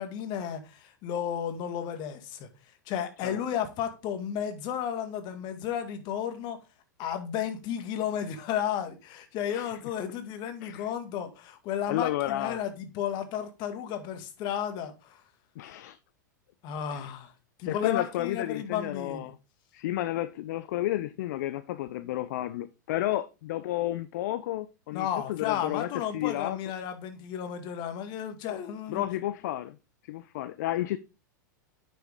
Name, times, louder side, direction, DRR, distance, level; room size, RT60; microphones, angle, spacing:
voice 1, 0.0-2.5 2.9-6.6 7.0-15.2 16.6-17.3 17.6-19.3 24.9-29.1, left 9 dB, 45° left, 2.1 m, -33 dB
voice 2, 11.9-12.6 15.6-16.0 16.9-17.1 17.7-19.4 19.7-26.6 28.9-29.8 30.0-31.0, left 14 dB, 60° left, 0.6 m, -32 dB
9.1 x 6.9 x 3.7 m
hypercardioid pair, 100°, 10 cm